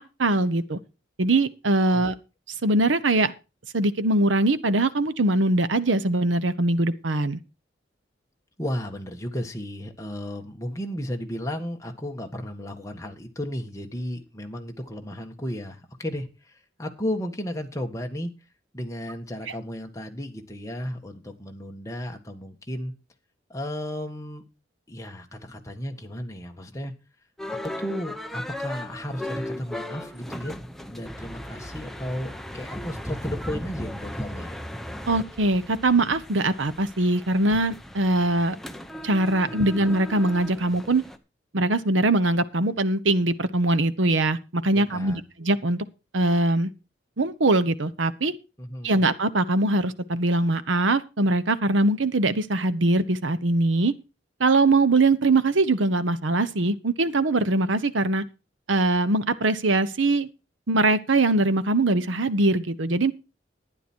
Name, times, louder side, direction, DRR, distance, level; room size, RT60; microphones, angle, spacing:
voice 1, 0.2-0.8 1.2-2.1 2.6-3.3 3.7-7.4 35.1-38.6 39.0-41.0 41.5-45.8 46.1-46.7 47.2-48.3 48.8-53.9 54.4-58.3 58.7-60.3 60.7-63.1, right 2 dB, 80° right, 1.0 m, -22 dB
voice 2, 8.6-18.3 18.7-22.9 23.5-24.4 24.9-26.9 27.6-30.5 30.9-34.5 39.4-39.8 44.7-45.2 48.6-48.9, equal, 15° left, 1.6 m, -34 dB
sound 1, 27.4-41.2, left 1 dB, ahead, 0.8 m, -36 dB
12.0 x 10.0 x 4.5 m
head